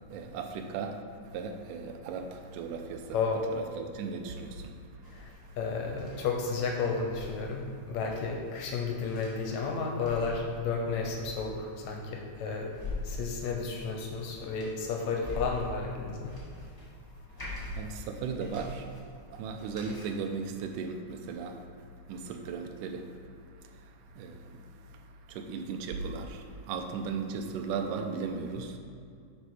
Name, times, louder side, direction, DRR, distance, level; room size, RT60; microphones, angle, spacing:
voice 1, 0.1-3.2 3.5-4.7 17.7-18.9 19.3-21.7 22.1-23.2 23.6-28.8, right 5 dB, 85° right, 5 dB, 2.1 m, -37 dB
voice 2, 3.1-3.4 5.1-5.3 5.6-12.7 13.0-16.3, left 4 dB, 70° left, 1 dB, 1.9 m, -32 dB
sound 1, 5.0-20.0, left 2 dB, 15° left, 0.6 m, -45 dB
9.7 x 4.4 x 4.8 m, 2.4 s
omnidirectional pair, 3.7 m